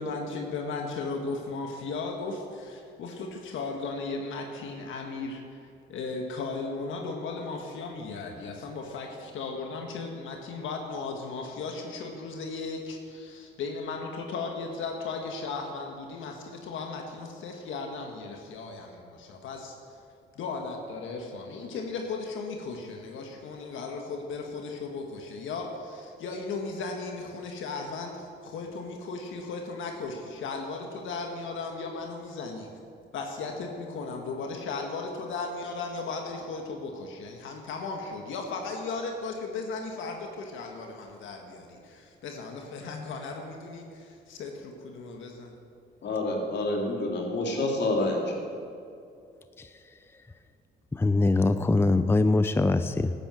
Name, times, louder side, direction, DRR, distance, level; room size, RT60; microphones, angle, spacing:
voice 1, 0.0-5.6 5.9-19.7 20.3-32.7 33.1-45.5, left 4 dB, 80° left, 2 dB, 1.6 m, -36 dB
voice 2, 46.0-48.3, left 2 dB, 60° left, 0 dB, 3.2 m, -28 dB
voice 3, 50.9-53.1, left 2 dB, 10° left, 10 dB, 0.5 m, -23 dB
12.5 x 10.0 x 7.7 m, 2.5 s
cardioid pair, 90°, 20 cm